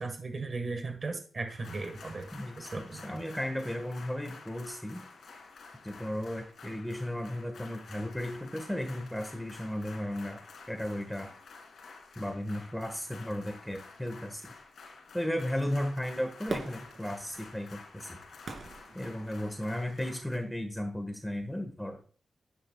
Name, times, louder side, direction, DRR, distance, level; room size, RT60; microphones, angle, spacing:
voice 1, 0.0-2.3 2.7-3.0, right 3 dB, 45° right, 6 dB, 1.5 m, -36 dB
sound 1, 1.5-20.4, left 4 dB, 80° left, 3.0 m, -51 dB
voice 2, 2.3-5.0 5.8-10.4 10.7-11.3 12.2-14.4 15.1-18.2 18.9-22.0, left 1 dB, 5° left, 5 dB, 1.5 m, -35 dB
Fireworks, 16.5-19.8 20.4-20.5, right 3 dB, 65° right, 2.5 m, -42 dB
10.5 x 9.9 x 2.3 m, 0.42 s
cardioid pair, 85°, 0 cm